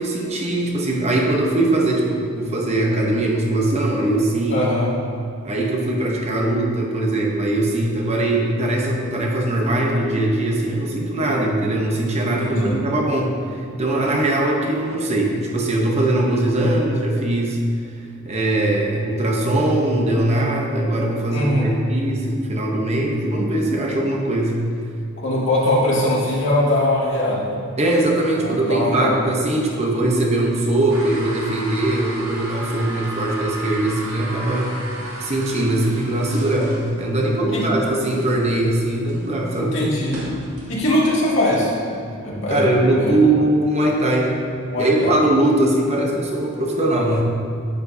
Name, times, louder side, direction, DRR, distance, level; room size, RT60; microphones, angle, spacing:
voice 1, 0.0-4.7 5.4-17.6 18.2-24.6 27.8-34.7 35.2-39.7 42.5-44.3 44.8-47.2, right 1 dB, 30° right, 0 dB, 0.9 m, -21 dB
voice 2, 4.5-4.9 12.2-12.8 21.3-21.8 25.2-27.5 28.3-29.2 37.5-37.6 39.6-40.2 40.7-41.7 42.0-42.7 43.0-43.2 44.7-45.1, left 1 dB, 60° left, -6 dB, 2.3 m, -21 dB
sound 1, 30.9-40.7, right 1 dB, 80° right, 2.2 m, -34 dB
10.5 x 8.7 x 2.8 m, 2.5 s
head